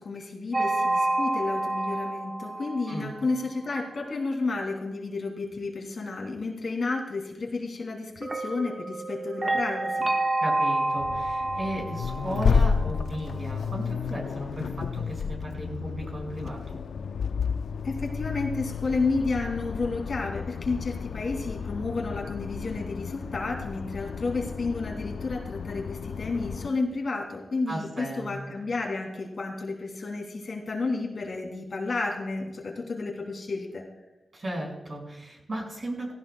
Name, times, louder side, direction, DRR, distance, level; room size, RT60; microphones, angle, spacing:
voice 1, 0.0-10.1 17.8-33.8, left 3 dB, 55° left, 1 dB, 2.3 m, -31 dB
sound 1, 0.5-3.5 8.2-13.2, right 2 dB, 25° right, 0.9 m, -29 dB
voice 2, 10.4-16.8 27.7-28.3 34.3-36.1, right 1 dB, 40° right, -1 dB, 5.3 m, -35 dB
Accelerating revving vroom, 11.0-26.7, left 5 dB, 80° left, 0.4 m, -31 dB
17.0 x 16.0 x 2.2 m, 1.0 s
wide cardioid pair, 90°, 0 cm